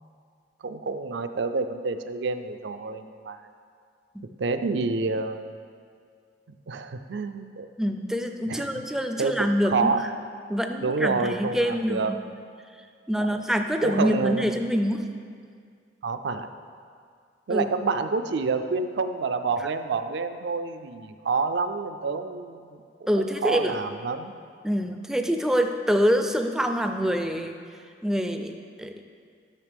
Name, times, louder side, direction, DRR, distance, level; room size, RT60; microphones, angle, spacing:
voice 1, 0.6-3.5 4.4-5.5 6.7-7.7 8.5-8.9 9.2-10.0 10.8-12.1 13.8-14.5 16.0-16.5 17.5-22.8 23.2-24.3, right 4 dB, 75° right, 8 dB, 0.4 m, -28 dB
voice 2, 7.8-10.1 10.5-12.2 13.1-15.0 17.5-17.7 23.1-23.8 24.6-27.6 28.0-28.5 28.8-28.9, equal, 5° right, 5 dB, 0.3 m, -25 dB
10.5 x 6.4 x 3.4 m, 2.1 s
head